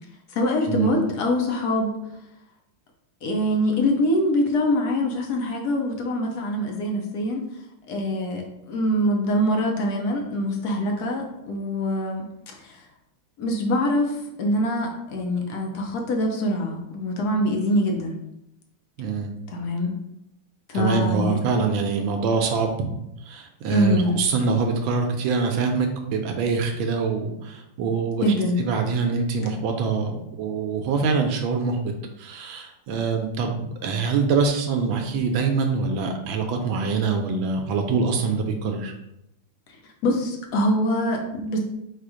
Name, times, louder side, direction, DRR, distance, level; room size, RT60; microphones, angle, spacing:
voice 1, 0.3-2.0 3.2-7.4 7.9-12.3 12.6-12.8 13.4-18.2 19.5-19.9 20.7-21.4 23.7-24.2 28.2-28.6 40.0-41.6, left 1 dB, 60° left, 1 dB, 1.2 m, -24 dB
voice 2, 19.0-19.3 20.7-23.0 23.3-28.2 28.6-31.9 32.2-38.9, right 5 dB, 80° right, 4 dB, 1.3 m, -24 dB
4.4 x 2.5 x 4.8 m, 0.83 s
omnidirectional pair, 2.3 m